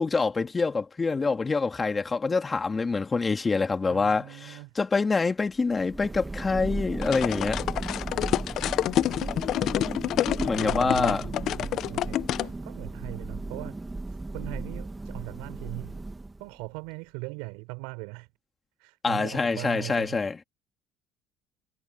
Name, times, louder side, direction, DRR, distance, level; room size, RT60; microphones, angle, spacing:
voice 1, 0.0-7.6 10.4-11.3 19.0-20.3, left 4 dB, 25° left, 2.8 m, -26 dB
voice 2, 3.9-4.7 10.5-13.8 14.1-16.0 16.4-18.3 18.8-20.3, right 29 dB, 85° right, 5.9 m, -39 dB
Thunder, 5.6-16.6, right 2 dB, 15° right, 1.9 m, -36 dB
sound 1, 7.0-12.5, left 12 dB, 60° left, 0.9 m, -28 dB
supercardioid pair, 80°, 0 cm